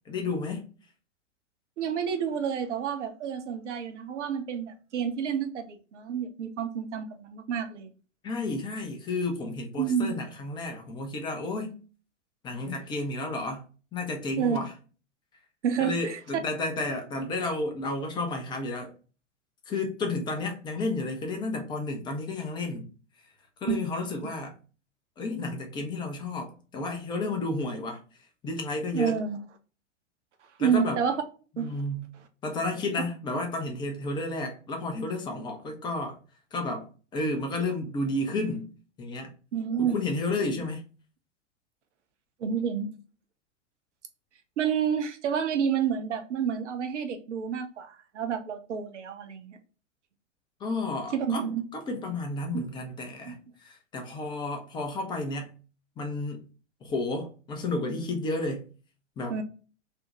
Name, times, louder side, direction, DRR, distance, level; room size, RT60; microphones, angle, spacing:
voice 1, 0.1-0.6 8.2-11.8 12.4-13.6 13.9-14.7 15.8-18.9 19.7-22.9 23.6-24.5 25.2-28.0 28.4-29.2 30.6-31.0 31.6-32.1 32.4-36.2 36.5-38.7 39.0-39.3 39.8-40.8 50.6-51.4 51.7-55.5 56.0-56.4 56.8-58.7 59.2-59.4, left 2 dB, 15° left, 0.4 m, -32 dB
voice 2, 1.8-7.9 9.8-10.1 14.4-14.6 15.6-16.2 23.7-23.8 28.9-29.4 30.6-31.2 31.6-31.7 39.5-40.0 42.4-42.9 44.6-49.6 51.1-51.6 52.5-52.6 53.3-53.4 59.3-59.4, right 7 dB, 70° right, 0.7 m, -29 dB
2.5 x 2.1 x 2.8 m
figure-of-eight pair, 100°, 37 cm